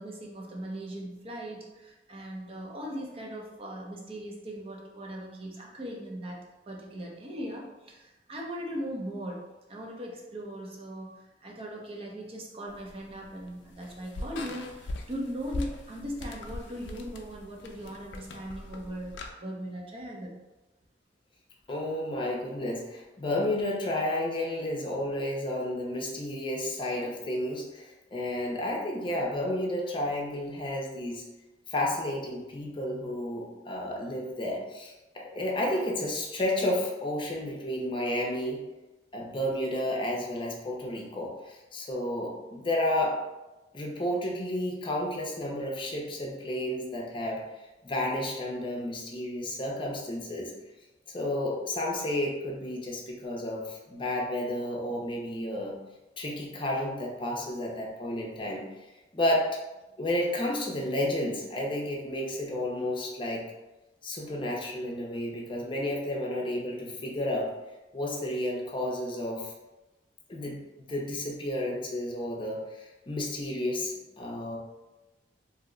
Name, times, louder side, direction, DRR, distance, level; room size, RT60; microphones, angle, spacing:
voice 1, 0.0-6.4 6.7-9.4 9.7-20.3, equal, 35° right, -1 dB, 0.5 m, -39 dB
sound 1, 12.7-19.3, left 2 dB, 85° left, 0.4 m, -41 dB
voice 2, 21.7-31.2 31.7-38.6 39.1-43.2 43.7-47.4 47.8-50.5 51.1-55.8 56.2-58.7 59.1-59.5 60.0-63.4 64.0-67.5 67.9-69.5 70.3-70.6 70.9-74.6, left 1 dB, 30° left, -2 dB, 0.6 m, -31 dB
2.7 x 2.1 x 3.7 m, 1.1 s
head